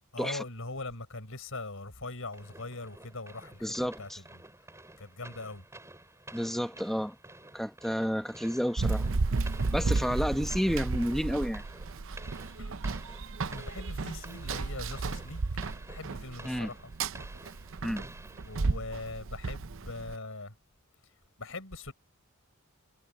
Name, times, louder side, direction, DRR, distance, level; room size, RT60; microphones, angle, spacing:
voice 1, 0.1-4.4 5.0-5.6 9.7-9.9 12.6-12.7 13.5-15.4 15.9-16.9 18.5-20.5 21.4-21.9, left 2 dB, 65° left, 6.7 m, -41 dB
sound 1, 2.3-19.1, right 2 dB, 15° right, 7.7 m, -51 dB
voice 2, 3.6-4.2 6.3-7.1 7.5-9.1 9.7-11.6 16.4-16.7 17.8-18.1, equal, ahead, 1.2 m, -31 dB
Run, 8.8-20.1, right 3 dB, 65° right, 0.7 m, -33 dB
head